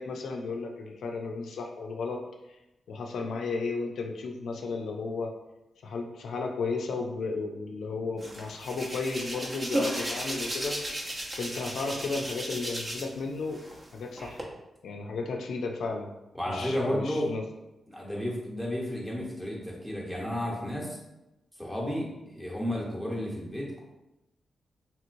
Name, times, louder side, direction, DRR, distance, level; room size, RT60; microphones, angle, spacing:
voice 1, 0.0-2.2 2.5-2.6 2.9-5.3 5.8-10.8 11.3-13.6 13.9-14.4 14.8-16.1 16.5-17.4, left 4 dB, 85° left, 2 dB, 0.3 m, -34 dB
Hands, 8.2-13.2 13.5-14.4, right 1 dB, 35° right, 0.7 m, -34 dB
voice 2, 16.3-17.3 17.9-21.0 21.6-23.8, left 1 dB, 5° right, -3 dB, 0.9 m, -32 dB
3.0 x 3.0 x 2.5 m, 0.95 s
cardioid pair, 80°, 0 cm